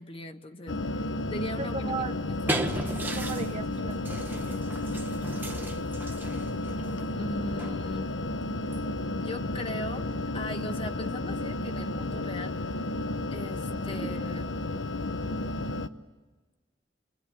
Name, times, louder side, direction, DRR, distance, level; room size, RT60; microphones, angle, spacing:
voice 1, 0.0-2.0 2.3-2.6 7.2-8.1 9.2-10.1 10.3-12.6 13.3-14.5, left 1 dB, 30° left, 7 dB, 1.2 m, -39 dB
sound 1, 0.7-15.9, left 2 dB, 90° left, 0.9 m, -32 dB
voice 2, 1.6-2.2 3.1-4.7 13.7-13.8, right 4 dB, 35° right, 9 dB, 0.8 m, -37 dB
sound 2, 2.0-10.1, right 1 dB, 10° right, 1.1 m, -38 dB
28.0 x 23.0 x 8.7 m, 1.3 s
head